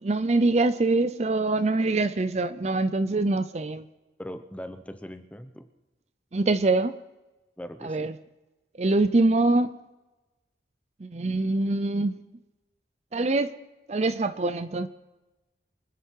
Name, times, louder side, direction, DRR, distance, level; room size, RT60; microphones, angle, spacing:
voice 1, 0.0-3.9 6.3-7.0 7.8-8.2 8.8-9.8 11.0-12.2 13.1-13.5 13.9-14.9, right 2 dB, 40° right, 0.5 m, -24 dB
voice 2, 4.2-5.7 7.6-8.1, equal, 10° left, 0.8 m, -40 dB
25.0 x 10.0 x 4.7 m
head